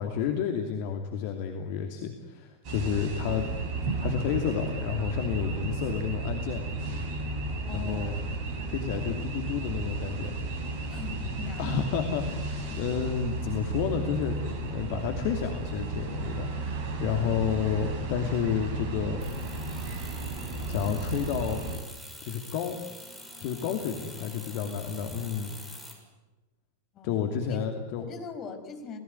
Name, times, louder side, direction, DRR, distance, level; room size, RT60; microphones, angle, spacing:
voice 1, 0.0-3.5 4.0-6.7 7.7-8.1 8.7-10.4 11.6-14.4 14.7-19.2 20.7-21.7 22.2-22.8 23.4-25.5 27.0-28.0, left 7 dB, 45° left, 4 dB, 2.7 m, -30 dB
sound 1, 2.6-21.8, right 2 dB, 45° right, 7.0 m, -33 dB
voice 2, 7.7-8.3 10.9-11.9 24.0-24.3 25.1-25.2 26.9-27.7 28.0-29.0, left 6 dB, 30° left, 7 dB, 5.1 m, -41 dB
sound 2, 19.2-25.9, left 1 dB, ahead, 6.9 m, -46 dB
29.5 x 19.0 x 9.7 m, 1.1 s
figure-of-eight pair, 90°, 0 cm